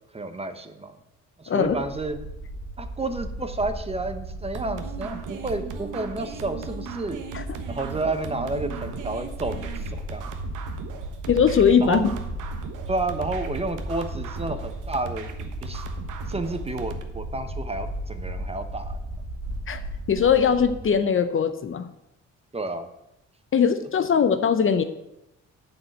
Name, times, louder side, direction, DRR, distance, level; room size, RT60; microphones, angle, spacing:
voice 1, 0.1-0.9 1.4-2.2 2.8-7.2 7.7-10.3 11.8-12.0 12.9-15.3 15.6-19.0 22.5-22.9, right 2 dB, 20° right, 8 dB, 1.0 m, -31 dB
sound 1, 1.6-20.9, right 1 dB, 55° right, 2.1 m, -36 dB
sound 2, 4.5-17.0, right 5 dB, 85° right, 1.2 m, -37 dB
voice 2, 11.3-12.0 19.7-19.8 20.1-21.9 23.5-24.8, left 7 dB, 45° left, 10 dB, 0.8 m, -20 dB
9.5 x 5.1 x 7.9 m, 0.87 s
cardioid pair, 90°, 30 cm